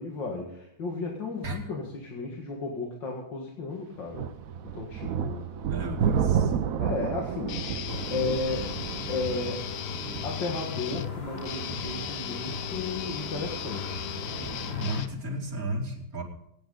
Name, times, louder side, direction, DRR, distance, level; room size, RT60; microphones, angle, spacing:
voice 1, 0.0-4.3 4.7-5.5 6.8-8.8 9.1-9.6 10.2-14.5, left 3 dB, 60° left, -1 dB, 2.5 m, -34 dB
sound 1, 4.1-14.8, right 8 dB, 70° right, 0.8 m, -32 dB
voice 2, 5.7-6.5 14.8-16.2, right 1 dB, 40° right, -2 dB, 3.2 m, -33 dB
Guitar, 7.5-15.5, left 10 dB, 80° left, 0.8 m, -36 dB
sound 2, 7.9-15.0, left 3 dB, 30° left, 2.1 m, -41 dB
24.0 x 9.3 x 3.9 m, 0.75 s
omnidirectional pair, 2.4 m